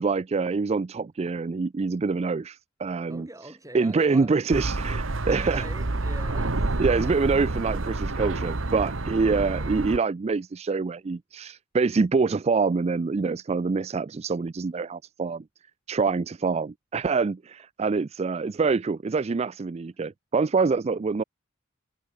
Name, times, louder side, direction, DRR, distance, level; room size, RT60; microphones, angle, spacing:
voice 1, 0.0-3.3 3.7-5.6 6.8-15.4 15.9-21.2, right 4 dB, 30° right, 0.4 m, -25 dB
voice 2, 3.1-4.4 5.3-7.2, right 1 dB, 15° right, 5.9 m, -43 dB
sound 1, 4.5-10.0, right 2 dB, 80° right, 1.4 m, -28 dB
head